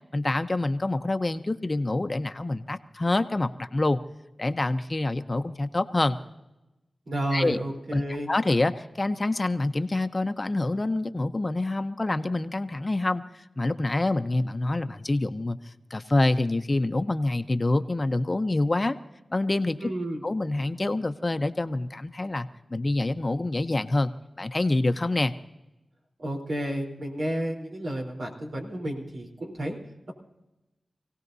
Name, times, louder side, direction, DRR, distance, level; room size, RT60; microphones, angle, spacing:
voice 1, 0.1-4.0 4.4-6.2 7.3-7.6 7.9-8.0 8.3-19.0 19.3-19.9 20.2-24.1 24.4-25.3, left 2 dB, 35° left, 9 dB, 0.8 m, -26 dB
voice 2, 7.1-8.3 19.8-20.2 26.2-29.8, right 1 dB, 80° right, 0 dB, 3.8 m, -31 dB
27.5 x 17.5 x 2.7 m, 0.97 s
wide cardioid pair, 60°, 0 cm